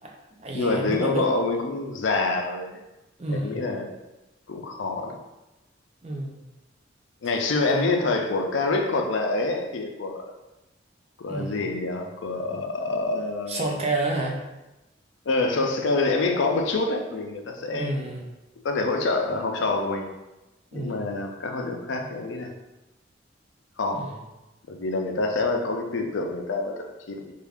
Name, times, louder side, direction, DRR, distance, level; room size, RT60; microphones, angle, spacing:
voice 1, 0.0-1.3 3.2-3.6 6.0-6.4 7.7-8.0 11.3-11.6 13.5-14.4 17.7-18.2 20.7-21.1 23.9-24.2, right 2 dB, 35° right, 0 dB, 0.5 m, -30 dB
voice 2, 0.5-2.8 3.3-3.8 4.5-5.2 7.2-10.2 11.2-13.8 15.3-18.0 18.6-20.1 20.7-22.5 23.8-24.1 24.7-27.1, left 3 dB, 80° left, 3 dB, 0.5 m, -26 dB
3.4 x 2.4 x 3.5 m, 1.0 s
head